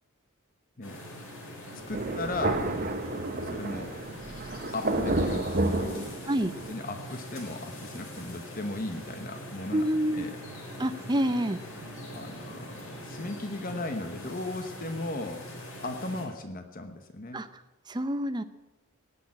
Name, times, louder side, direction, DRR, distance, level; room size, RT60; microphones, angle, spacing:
sound 1, 0.8-16.3, equal, 70° left, 4.6 m, -43 dB
voice 1, 1.9-2.7 3.4-3.9 4.7-6.1 6.7-9.9 10.1-10.4 12.1-15.5 15.8-17.4, left 2 dB, 40° left, 7 dB, 1.0 m, -36 dB
Thunder, 1.9-6.7, right 2 dB, 40° right, 1.1 m, -30 dB
voice 2, 9.7-10.3 10.8-11.6 17.3-17.5 17.9-18.4, equal, 20° right, 10 dB, 0.6 m, -27 dB
18.0 x 6.9 x 8.6 m, 1.1 s
head